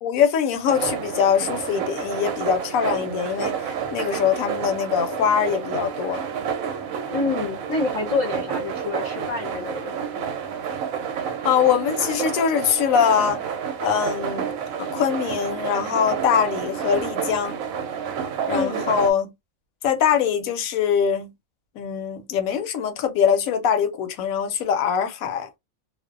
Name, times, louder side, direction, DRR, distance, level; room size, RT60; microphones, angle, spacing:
voice 1, 0.0-6.3 11.4-13.4 13.8-14.5 14.8-17.6 18.5-19.3 19.8-21.3 21.8-25.5, left 7 dB, 75° left, 1.0 m, -22 dB
sound 1, 0.7-19.1, right 7 dB, 75° right, 1.0 m, -29 dB
voice 2, 7.1-9.9 18.5-18.9, left 3 dB, 30° left, 0.7 m, -27 dB
2.5 x 2.0 x 2.4 m
omnidirectional pair, 1.5 m